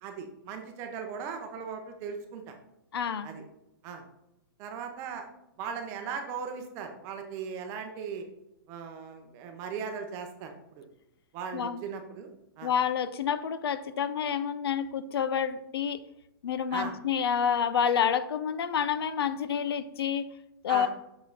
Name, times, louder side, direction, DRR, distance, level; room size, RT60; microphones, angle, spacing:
voice 1, 0.0-2.6 3.2-3.4 3.8-4.0 4.6-5.3 5.6-8.3 8.7-10.8 11.3-12.3 12.6-12.7 16.7-16.9 20.7-20.9, right 6 dB, 20° right, 5 dB, 0.7 m, -38 dB
voice 2, 2.9-3.3 11.5-11.8 12.6-16.0 16.4-20.3 20.6-20.9, left 8 dB, 85° left, 14 dB, 0.5 m, -28 dB
6.2 x 5.3 x 3.9 m, 0.85 s
hypercardioid pair, 175°, 13 cm